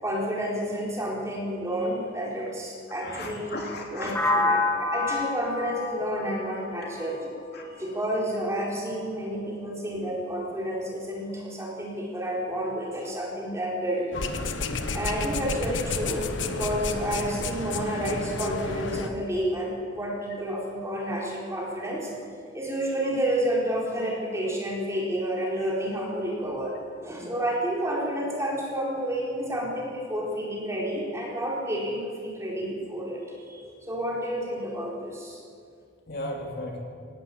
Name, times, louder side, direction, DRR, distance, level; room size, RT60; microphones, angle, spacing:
voice 1, 0.0-3.6 3.9-7.2 7.8-14.1 14.9-22.1 22.5-26.7 27.0-33.2 33.5-35.4, equal, 15° right, -3 dB, 4.5 m, -30 dB
voice 2, 3.0-4.3 7.5-7.6 36.1-36.8, left 1 dB, 55° left, 0 dB, 3.1 m, -35 dB
sound 1, 4.1-8.0, left 2 dB, 10° left, 2.2 m, -28 dB
sound 2, 14.1-19.1, left 3 dB, 70° left, 1.4 m, -31 dB
19.0 x 17.0 x 8.9 m, 2.2 s
head